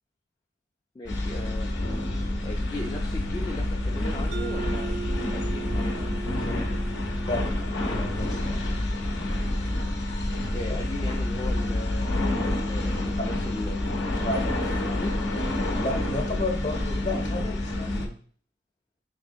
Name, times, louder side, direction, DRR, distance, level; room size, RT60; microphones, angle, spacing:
voice 1, 0.9-1.7 2.4-6.6 10.5-14.0 14.9-15.1, left 2 dB, 25° left, -2 dB, 0.3 m, -38 dB
sound 1, 1.1-18.1, left 1 dB, 75° left, 0.7 m, -28 dB
Mallet percussion, 4.3-8.9, right 5 dB, 65° right, 0.3 m, -39 dB
voice 2, 6.2-6.6 7.1-8.6 13.2-13.3 14.2-14.8 15.8-18.2, left 2 dB, 40° left, 2 dB, 0.8 m, -33 dB
3.6 x 3.2 x 2.6 m, 0.43 s
head